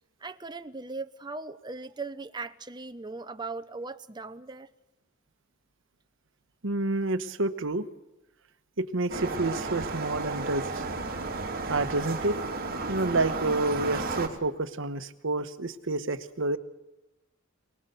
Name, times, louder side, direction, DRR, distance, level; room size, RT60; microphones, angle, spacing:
voice 1, 0.2-4.7, right 3 dB, 20° right, 9 dB, 0.8 m, -38 dB
voice 2, 6.6-7.8 8.8-10.8 11.7-12.4 12.9-16.6, right 2 dB, 65° right, 10 dB, 1.2 m, -29 dB
sound 1, 9.1-14.3, right 3 dB, 45° right, 2.9 m, -33 dB
27.0 x 19.5 x 6.9 m, 0.95 s
head